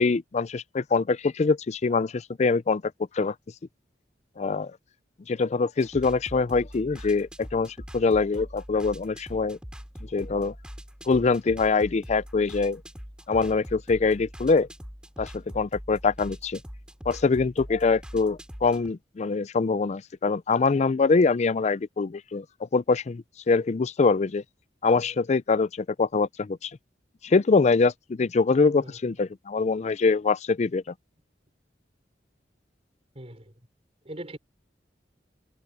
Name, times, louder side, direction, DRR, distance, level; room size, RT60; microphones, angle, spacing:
voice 1, 0.0-2.8 3.1-3.3 4.4-4.7 5.3-9.6 10.1-10.5 11.1-12.8 13.3-14.7 15.2-16.6 17.1-22.4 22.7-24.4 24.8-26.7 27.2-30.8, left 4 dB, 40° left, 0.4 m, -24 dB
sound 1, 5.8-18.9, equal, 5° right, 2.9 m, -43 dB
voice 2, 33.1-33.5 34.0-34.4, right 1 dB, 35° right, 4.3 m, -40 dB
head